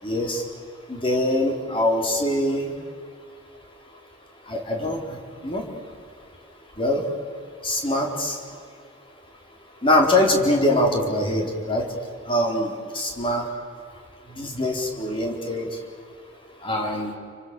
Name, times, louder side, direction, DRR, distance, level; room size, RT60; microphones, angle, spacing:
voice 1, 0.0-0.4 0.9-2.7 4.5-5.6 6.8-7.1 7.6-8.4 9.8-11.9 12.2-13.4 14.3-15.8 16.6-17.2, left 1 dB, 30° left, 1 dB, 4.1 m, -23 dB
29.5 x 25.0 x 6.9 m, 2.3 s
head